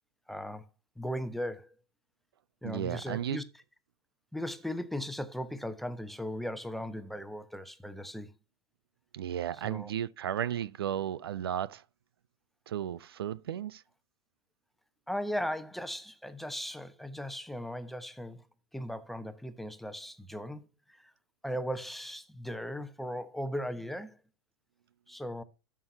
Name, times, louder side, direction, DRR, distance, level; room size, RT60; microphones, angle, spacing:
voice 1, 0.3-0.6 1.0-1.7 2.6-3.4 4.3-8.3 9.5-9.9 15.1-18.4 18.7-21.1 21.4-24.2 25.1-25.4, equal, ahead, 0.9 m, -37 dB
voice 2, 2.6-3.4 9.1-11.8 12.7-13.8, right 10 dB, 70° right, 0.5 m, -34 dB
12.5 x 6.1 x 2.8 m
figure-of-eight pair, 95°, 13 cm